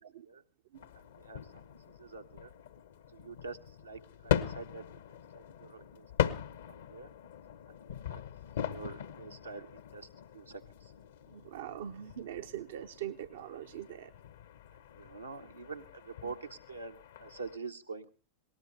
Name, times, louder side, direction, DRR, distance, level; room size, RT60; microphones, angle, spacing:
sound 1, 0.7-17.6, left 10 dB, 60° left, 1.0 m, -40 dB
voice 1, 0.9-1.7 2.0-2.5 3.1-4.8 5.1-6.4 6.7-7.1 7.7-7.8 8.1-8.2 8.7-10.1 10.3-10.9 14.9-18.1, right 4 dB, 80° right, 4 dB, 1.1 m, -46 dB
voice 2, 11.3-14.1, right 11 dB, 60° right, 8 dB, 0.7 m, -42 dB
20.0 x 18.5 x 3.4 m, 0.37 s
figure-of-eight pair, 90°, 0 cm